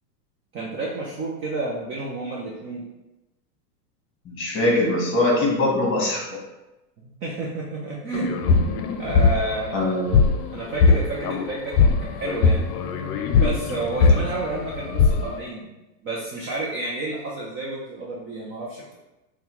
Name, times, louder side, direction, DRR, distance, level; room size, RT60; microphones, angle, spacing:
voice 1, 0.5-2.8 7.0-8.4 9.0-10.0 10.5-12.7 13.3-15.7 16.0-18.9, right 2 dB, 25° right, -4 dB, 0.5 m, -30 dB
voice 2, 4.2-6.2 9.7-10.6, left 1 dB, 25° left, -3 dB, 1.5 m, -22 dB
sound 1, 8.1-10.4 10.7-15.3, left 4 dB, 65° left, 0.6 m, -20 dB
5.4 x 2.3 x 3.0 m, 1.0 s
supercardioid pair, 120°, 49 cm